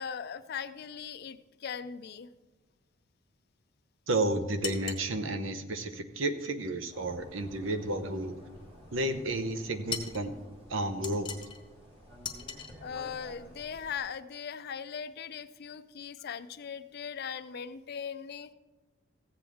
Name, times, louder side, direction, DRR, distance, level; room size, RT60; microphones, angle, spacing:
voice 1, 0.0-2.3 12.8-18.5, left 7 dB, 50° left, 12 dB, 0.4 m, -39 dB
voice 2, 4.1-8.3 8.9-10.3 10.7-11.4, right 2 dB, 75° right, 9 dB, 0.8 m, -32 dB
sound 1, 4.6-5.1 9.9-10.2 11.0-11.6 12.2-12.7, left 7 dB, 25° left, 0.8 m, -38 dB
sound 2, 6.9-14.0, equal, 30° right, 1.8 m, -52 dB
15.0 x 7.8 x 3.5 m, 1.2 s
head